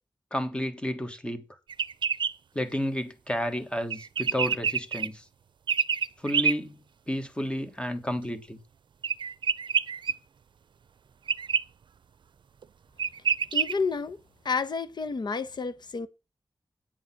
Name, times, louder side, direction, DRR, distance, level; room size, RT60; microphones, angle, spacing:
voice 1, 0.3-1.4 2.5-5.2 6.2-8.6, equal, 15° left, 1.6 m, -31 dB
sound 1, 1.7-2.3 3.9-5.1 5.7-6.5 9.0-10.1 11.3-11.6 12.6-12.7 13.0-13.7, right 6 dB, 80° right, 0.5 m, -27 dB
voice 2, 13.5-14.2 14.4-16.1, left 4 dB, 65° left, 1.0 m, -30 dB
8.9 x 7.9 x 5.9 m
wide cardioid pair, 130°, 8 cm